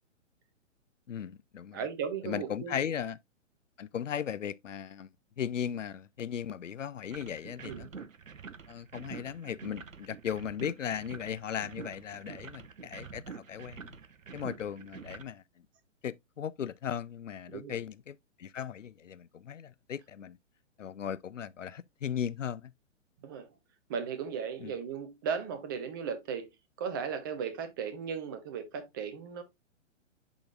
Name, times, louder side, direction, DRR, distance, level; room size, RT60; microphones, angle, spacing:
voice 1, 1.1-1.9 2.2-3.2 3.8-5.1 5.4-8.1 8.7-14.0 14.3-15.4 16.0-20.4 20.8-22.7 24.6-24.7, left 8 dB, 70° left, 0.5 m, -37 dB
voice 2, 1.7-2.9 7.6-7.9 17.5-17.8 23.2-23.5 23.9-26.5 26.8-29.4, right 6 dB, 15° right, 0.6 m, -36 dB
sound 1, 7.1-15.2, right 6 dB, 80° right, 0.7 m, -47 dB
10.5 x 3.9 x 2.4 m
figure-of-eight pair, 125°, 39 cm